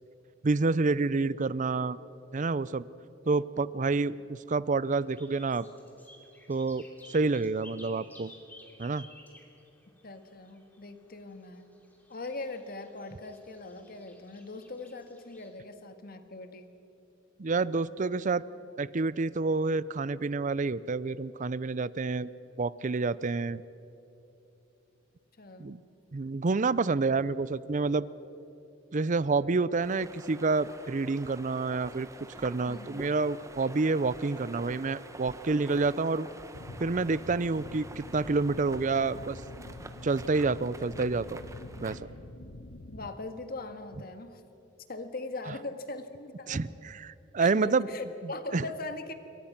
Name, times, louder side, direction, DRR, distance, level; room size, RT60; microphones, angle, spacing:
voice 1, 0.4-2.0 2.3-2.8 3.3-5.7 6.5-8.3 8.8-9.1 17.4-18.4 18.8-22.3 22.6-23.6 25.6-25.8 26.1-28.1 28.9-32.1 32.4-36.3 36.8-39.4 40.0-41.4 41.8-42.0 46.5-47.9 48.5-48.7, right 3 dB, 40° right, 18 dB, 0.5 m, -28 dB
sound 1, 5.0-15.5, left 1 dB, 10° left, 3.1 m, -56 dB
voice 2, 10.0-11.7 12.1-16.7 25.4-25.7 32.7-33.1 42.9-44.4 44.9-46.6 47.4-49.1, left 2 dB, 50° left, 8 dB, 1.7 m, -41 dB
sound 2, 29.8-42.0, right 2 dB, 15° right, 1.2 m, -48 dB
sound 3, 36.5-43.1, left 1 dB, 85° left, 1.1 m, -46 dB
27.5 x 23.5 x 6.0 m, 3.0 s
head